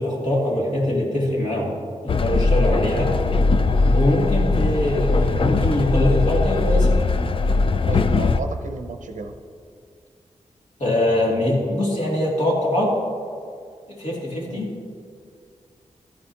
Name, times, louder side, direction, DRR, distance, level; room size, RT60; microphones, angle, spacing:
voice 1, 0.0-1.7 2.0-3.1 3.8-6.9 10.8-12.9 13.9-14.7, left 1 dB, 75° left, -4 dB, 2.6 m, -22 dB
Train, 2.1-8.4, left 3 dB, 45° left, 0.4 m, -20 dB
voice 2, 7.9-9.3 14.4-14.7, right 3 dB, 90° right, 6 dB, 0.7 m, -33 dB
13.5 x 9.7 x 2.9 m, 2.2 s
wide cardioid pair, 105°, 13 cm